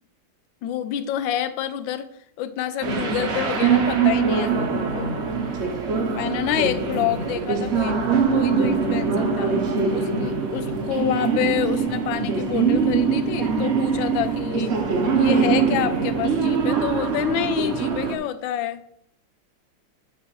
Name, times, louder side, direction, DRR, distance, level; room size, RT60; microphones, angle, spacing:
voice 1, 0.6-2.1 2.4-5.2 6.1-9.5 9.9-14.7 15.1-18.8, left 11 dB, 80° left, 1.3 m, -28 dB
sound 1, 2.8-18.2, right 5 dB, 55° right, 0.8 m, -23 dB
8.1 x 6.2 x 3.1 m
omnidirectional pair, 2.1 m